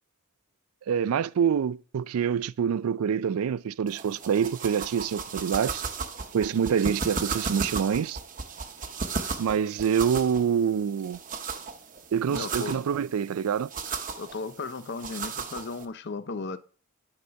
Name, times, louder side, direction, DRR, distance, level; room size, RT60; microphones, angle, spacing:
voice 1, 0.9-5.8 6.3-8.2 9.4-11.2 12.1-13.7, right 7 dB, 90° right, 0.4 m, -26 dB
sound 1, 3.9-15.9, right 4 dB, 40° right, 0.9 m, -36 dB
voice 2, 12.3-12.9 14.2-16.6, left 4 dB, 55° left, 0.6 m, -35 dB
9.6 x 4.0 x 5.7 m
head